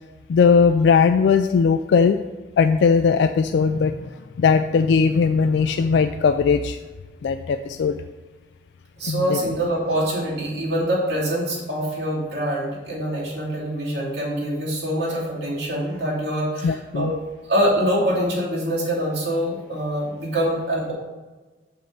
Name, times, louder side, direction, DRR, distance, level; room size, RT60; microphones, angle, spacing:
voice 1, 0.3-2.2 2.6-4.1 4.4-6.8 7.2-8.0 9.1-9.4 16.6-17.1, left 5 dB, 80° left, 8 dB, 0.3 m, -18 dB
voice 2, 9.0-17.1 17.5-20.9, equal, 65° right, -5 dB, 2.8 m, -24 dB
6.6 x 5.4 x 5.8 m, 1.2 s
head